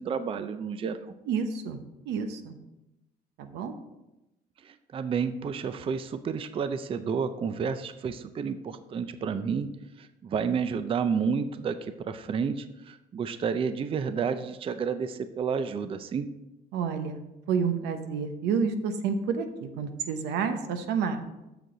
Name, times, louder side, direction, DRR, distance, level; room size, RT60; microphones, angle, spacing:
voice 1, 0.0-1.1 4.6-9.7 10.0-16.3, right 6 dB, 35° right, 11 dB, 0.4 m, -30 dB
voice 2, 1.3-2.6 3.4-3.7 16.7-17.2 17.5-21.2, right 6 dB, 85° right, 8 dB, 0.9 m, -29 dB
8.1 x 6.1 x 3.8 m, 0.94 s
cardioid pair, 110°, 17 cm